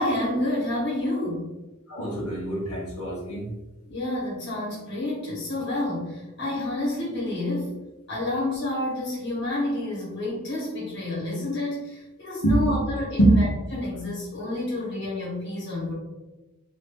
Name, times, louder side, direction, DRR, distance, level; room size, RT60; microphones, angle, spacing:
voice 1, 0.0-1.5 3.9-7.8 8.1-15.9, left 1 dB, 50° left, -5 dB, 1.3 m, -29 dB
voice 2, 1.9-3.5 12.4-12.8 13.2-13.3, right 1 dB, 90° left, -5 dB, 0.8 m, -23 dB
2.7 x 2.6 x 3.4 m, 1.1 s
head